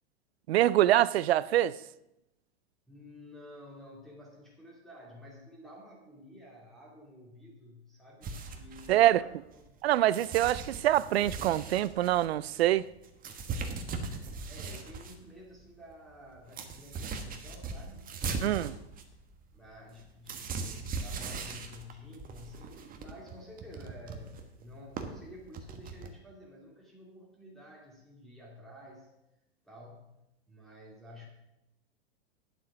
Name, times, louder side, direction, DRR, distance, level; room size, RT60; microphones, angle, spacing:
voice 1, 0.5-1.8 8.9-9.2 9.8-12.9 18.4-18.7, right 13 dB, 70° right, 0.6 m, -25 dB
voice 2, 2.9-9.8 14.5-18.1 19.5-29.1 29.6-30.2 30.5-31.3, left 1 dB, ahead, 2.4 m, -51 dB
sound 1, 8.2-9.8 10.1-15.1 15.6-15.7 15.9-26.1, right 4 dB, 25° right, 1.4 m, -39 dB
10.0 x 7.5 x 6.0 m
hypercardioid pair, 110°, 32 cm